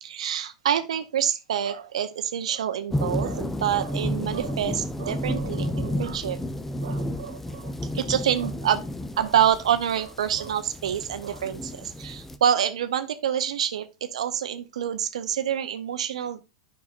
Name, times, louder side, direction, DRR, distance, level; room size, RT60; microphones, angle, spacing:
voice 1, 0.0-6.4 6.8-8.8 9.2-16.4, right 9 dB, 75° right, 0.5 m, -27 dB
sound 1, 2.9-12.4, left 1 dB, 10° left, 0.7 m, -32 dB
9.4 x 5.5 x 2.4 m
hypercardioid pair, 95°, 3 cm